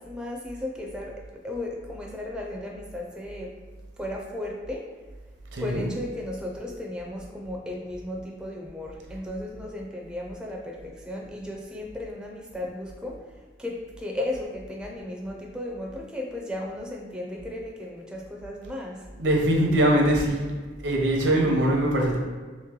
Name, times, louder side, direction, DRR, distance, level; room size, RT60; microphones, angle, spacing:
voice 1, 0.0-3.6 4.0-4.9 5.6-13.3 13.6-19.1, left 1 dB, 5° right, -1 dB, 0.4 m, -35 dB
voice 2, 5.5-5.9 19.2-20.5 20.8-22.2, right 1 dB, 80° right, 0 dB, 0.7 m, -22 dB
3.1 x 3.0 x 3.6 m, 1.4 s
head